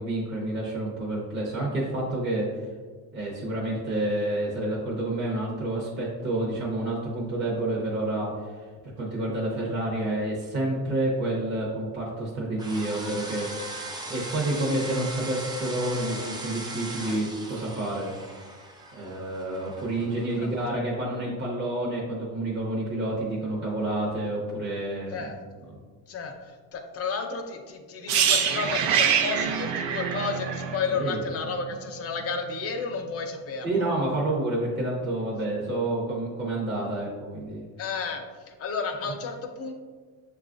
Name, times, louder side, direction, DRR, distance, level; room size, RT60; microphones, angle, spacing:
voice 1, 0.0-2.5 3.1-8.6 9.0-18.6 18.9-25.1 30.9-31.2 33.6-37.6, right 1 dB, 30° right, -4 dB, 0.7 m, -29 dB
sound 1, 12.6-20.7, right 2 dB, 10° right, 0.4 m, -39 dB
voice 2, 20.4-20.8 25.1-25.4 26.1-33.9 37.8-39.7, left 4 dB, 35° left, 4 dB, 0.5 m, -32 dB
sound 2, 28.1-31.9 32.2-32.4, right 7 dB, 80° right, 0.6 m, -25 dB
7.0 x 2.4 x 2.4 m, 1.5 s
cardioid pair, 120°, 40 cm